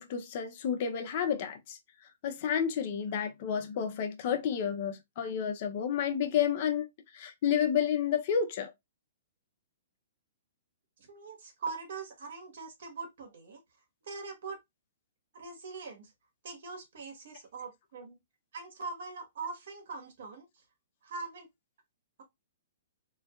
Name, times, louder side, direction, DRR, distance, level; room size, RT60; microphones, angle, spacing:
voice 1, 0.0-1.8 2.2-6.8 7.1-8.7, left 8 dB, 40° left, 0.6 m, -30 dB
voice 2, 11.1-13.6 14.0-14.6 15.3-16.1 16.4-18.2 18.5-20.4 21.0-21.5, right 4 dB, 65° right, 1.3 m, -42 dB
3.2 x 2.3 x 2.3 m
hypercardioid pair, 160°, 0 cm